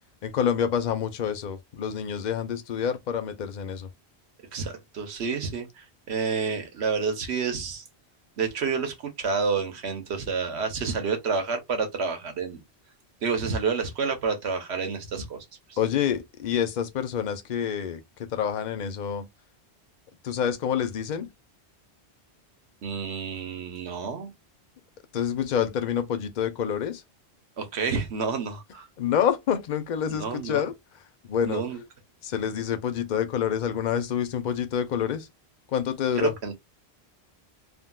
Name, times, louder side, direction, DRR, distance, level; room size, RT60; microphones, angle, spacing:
voice 1, 0.2-3.9 15.8-19.3 20.2-21.3 25.1-27.0 29.0-30.7 31.3-31.6 32.2-35.3 35.7-36.3, left 8 dB, 55° left, 0.6 m, -27 dB
voice 2, 4.5-7.9 8.4-12.6 13.2-15.8 22.8-24.3 27.6-28.9 30.1-30.7 31.5-31.8 36.2-36.5, right 5 dB, 75° right, 1.1 m, -29 dB
3.5 x 2.2 x 2.3 m
omnidirectional pair, 1.1 m